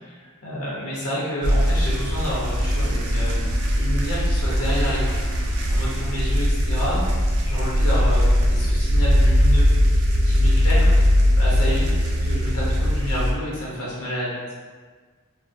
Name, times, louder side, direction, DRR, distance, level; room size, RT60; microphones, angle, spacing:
voice 1, 0.0-3.4 3.8-5.2 5.7-7.0 7.4-9.7 10.2-10.9 11.4-11.9 12.2-14.3, equal, 80° left, -7 dB, 0.9 m, -29 dB
sound 1, 1.4-13.3, equal, 75° right, 0.4 m, -20 dB
3.3 x 2.1 x 2.6 m, 1.5 s
head